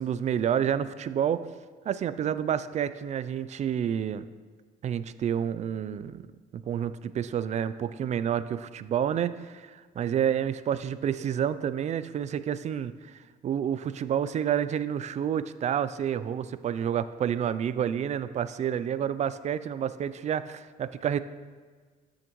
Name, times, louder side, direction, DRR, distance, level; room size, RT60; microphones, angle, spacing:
voice 1, 0.0-1.5 1.9-4.3 4.8-6.2 6.5-21.2, right 9 dB, 45° right, 14 dB, 0.4 m, -29 dB
13.5 x 6.3 x 3.1 m, 1.5 s
cardioid pair, 110°, 17 cm